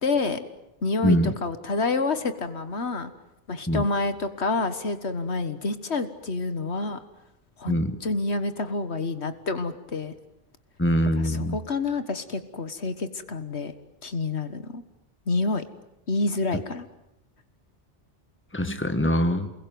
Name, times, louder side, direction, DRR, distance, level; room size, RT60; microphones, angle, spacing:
voice 1, 0.0-0.5 0.8-3.1 3.5-7.0 7.6-10.1 11.2-13.7 14.0-14.8 15.3-15.6 16.1-16.9, left 3 dB, 70° left, 10 dB, 1.8 m, -28 dB
voice 2, 1.0-1.3 3.7-3.8 7.7-8.0 10.8-11.6 18.5-19.5, equal, 10° left, 8 dB, 1.7 m, -23 dB
29.0 x 21.5 x 9.4 m, 0.88 s
omnidirectional pair, 1.1 m